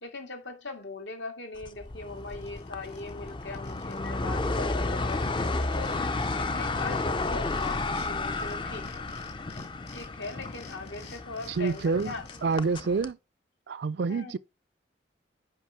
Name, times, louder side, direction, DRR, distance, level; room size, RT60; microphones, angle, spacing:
voice 1, 0.0-5.3 5.8-9.1 9.9-12.2 12.5-12.7 14.1-14.3, left 3 dB, 75° left, 2.2 m, -40 dB
sound 1, 1.6-13.1, left 2 dB, 25° left, 0.5 m, -32 dB
sound 2, 1.8-1.9 2.2-4.1 4.3-4.4 4.6-8.1 8.4-12.6, left 4 dB, 55° left, 3.5 m, -51 dB
voice 2, 11.6-12.1 12.4-13.2 13.7-14.4, right 4 dB, 65° right, 0.4 m, -27 dB
9.1 x 5.5 x 4.5 m
head